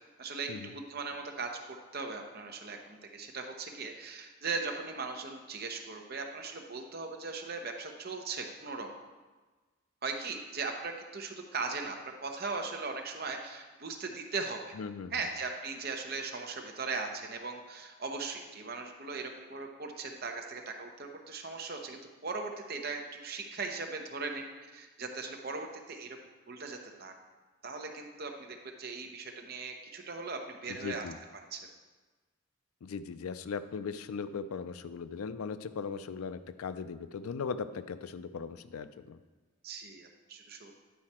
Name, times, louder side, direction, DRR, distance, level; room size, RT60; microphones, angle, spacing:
voice 1, 0.2-1.5 1.9-8.9 10.0-12.0 12.2-14.6 15.1-24.5 24.7-26.2 26.5-27.1 27.6-31.1 31.5-31.6 39.6-40.7, right 4 dB, 45° right, 3 dB, 0.8 m, -39 dB
voice 2, 14.8-15.1 30.7-31.2 32.8-39.2, left 5 dB, 85° left, 13 dB, 0.4 m, -38 dB
9.4 x 4.8 x 4.3 m, 1.3 s
head